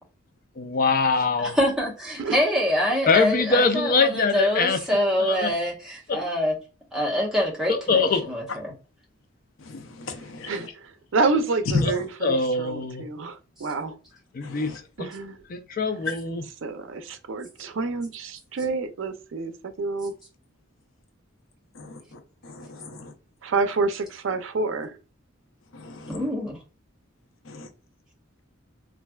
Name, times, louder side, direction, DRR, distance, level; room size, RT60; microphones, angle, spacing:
voice 1, 0.6-1.6 3.1-4.8 5.2-5.5 6.1-6.2 7.7-8.3 11.8-11.9 12.2-13.0 14.3-14.7 15.0-15.1 15.5-16.4, left 4 dB, 45° left, 0.4 m, -23 dB
voice 2, 1.4-6.6 6.9-8.7 26.1-26.6, equal, 5° right, 1.0 m, -25 dB
voice 3, 9.6-10.7 11.7-12.1 14.4-14.8 16.1-16.2 21.7-23.1 25.7-26.3 27.4-27.7, left 3 dB, 90° left, 0.6 m, -33 dB
voice 4, 10.5-13.9 15.0-15.4 16.6-20.1 23.4-24.9, right 3 dB, 75° right, 0.5 m, -28 dB
3.2 x 2.5 x 2.2 m
head